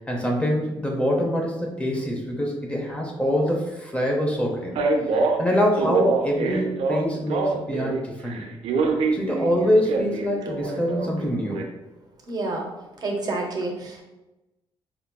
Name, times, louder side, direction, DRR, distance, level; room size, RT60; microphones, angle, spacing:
voice 1, 0.1-4.7 5.4-8.5 9.1-11.6, equal, 10° left, -1 dB, 0.6 m, -24 dB
Male speech man speaking, 4.8-8.0 8.3-11.6, right 4 dB, 80° right, 0.5 m, -25 dB
voice 2, 12.3-12.7 13.0-14.0, right 2 dB, 40° right, 0 dB, 0.7 m, -28 dB
4.4 x 2.8 x 2.2 m, 1.0 s
cardioid pair, 120°, 10 cm